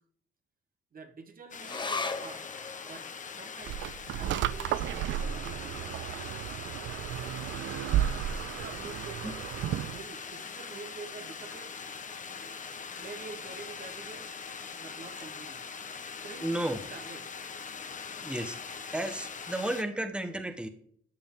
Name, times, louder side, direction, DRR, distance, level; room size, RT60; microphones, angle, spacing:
voice 1, 0.9-2.5 2.8-6.0 8.4-9.4 9.8-11.8 13.0-14.4 14.8-15.6 16.2-17.3, right 5 dB, 45° right, 1.3 m, -47 dB
sound 1, 1.5-19.8, left 5 dB, 40° left, 1.1 m, -42 dB
sound 2, 1.6-8.4 8.7-8.8 9.1-9.8 10.4-10.5, left 4 dB, 25° left, 0.8 m, -42 dB
sound 3, 3.7-10.0, right 11 dB, 70° right, 0.5 m, -33 dB
voice 2, 12.3-12.6 16.4-16.8 18.2-20.7, right 1 dB, 5° right, 1.2 m, -34 dB
13.5 x 7.0 x 3.8 m
cardioid pair, 90°, 20 cm